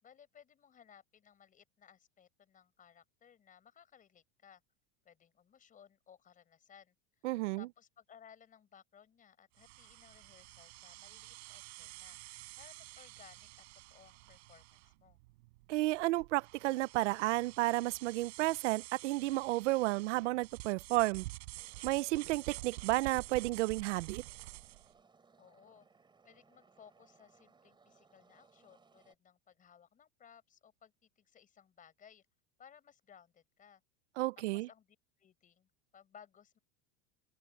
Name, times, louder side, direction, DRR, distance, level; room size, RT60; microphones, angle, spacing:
voice 1, 0.0-4.6 5.0-7.3 7.6-13.5 13.9-15.2 25.4-25.9 26.2-32.2 32.6-33.8 34.5-36.6, left 8 dB, 25° left, 4.8 m, -61 dB
voice 2, 7.2-7.7 15.7-21.2 21.8-24.2 34.2-34.7, right 19 dB, 85° right, 0.7 m, -32 dB
sound 1, 9.5-24.9, right 23 dB, 70° right, 4.9 m, -49 dB
sound 2, 21.5-29.1, right 4 dB, 15° right, 4.3 m, -67 dB
open air
supercardioid pair, 150°, 34 cm